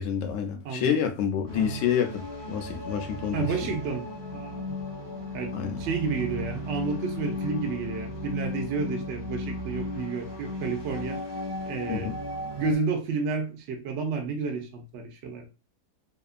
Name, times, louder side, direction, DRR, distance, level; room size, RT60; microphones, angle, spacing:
voice 1, 0.0-3.5 5.5-5.8 11.9-12.2, left 8 dB, 70° left, 0.8 m, -28 dB
voice 2, 0.6-1.0 1.5-1.8 3.3-4.1 4.3-4.8 5.3-11.2 11.7-12.1 12.6-15.5, right 4 dB, 70° right, 0.7 m, -31 dB
sound 1, 1.5-12.7, left 1 dB, 25° right, 0.6 m, -35 dB
2.8 x 2.3 x 2.3 m
omnidirectional pair, 1.7 m